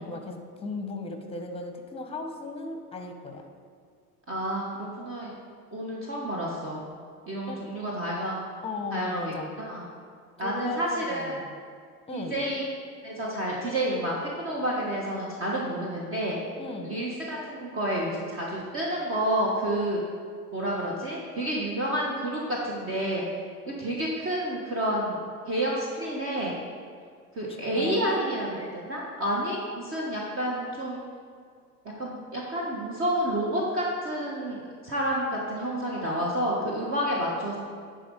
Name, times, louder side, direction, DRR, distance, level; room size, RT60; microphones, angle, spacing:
voice 1, 0.0-3.4 7.5-7.6 8.6-9.5 10.4-11.5 12.1-12.4 16.6-17.0 27.8-28.2, left 3 dB, 10° left, 5 dB, 1.0 m, -36 dB
voice 2, 4.3-5.3 5.7-6.8 7.3-8.4 8.9-9.8 10.4-11.4 12.1-12.6 13.0-16.4 16.8-20.0 20.5-23.2 23.7-25.2 25.5-26.5 27.3-31.0 32.0-37.6, right 1 dB, 30° right, -3 dB, 1.3 m, -29 dB
10.5 x 4.0 x 5.3 m, 2.1 s
figure-of-eight pair, 75°, 46 cm